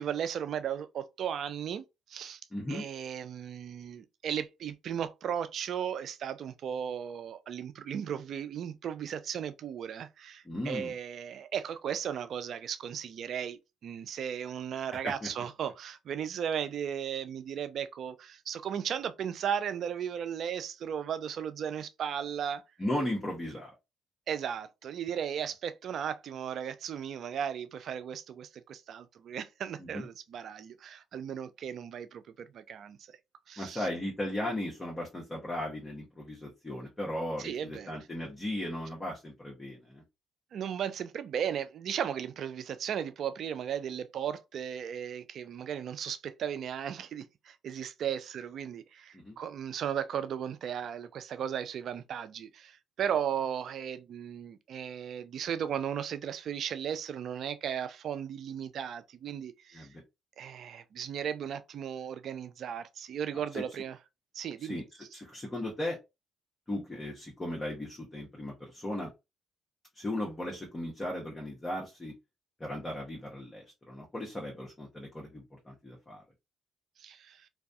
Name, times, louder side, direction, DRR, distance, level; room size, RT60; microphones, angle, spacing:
voice 1, 0.0-1.8 2.1-2.4 2.7-22.6 24.3-33.0 33.5-33.9 37.4-38.0 40.5-59.9 60.4-64.0 64.3-64.8 77.0-77.5, right 8 dB, 65° right, 0.3 m, -36 dB
voice 2, 2.5-2.8 10.4-10.9 15.0-15.3 22.8-23.7 29.8-30.0 33.6-40.0 49.1-49.4 59.7-60.0 63.5-63.6 64.6-64.8 65.1-66.0 66.7-69.1 69.9-72.1 72.6-76.2, left 1 dB, 25° left, 0.9 m, -36 dB
2.3 x 2.2 x 2.6 m
supercardioid pair, 60°, 0 cm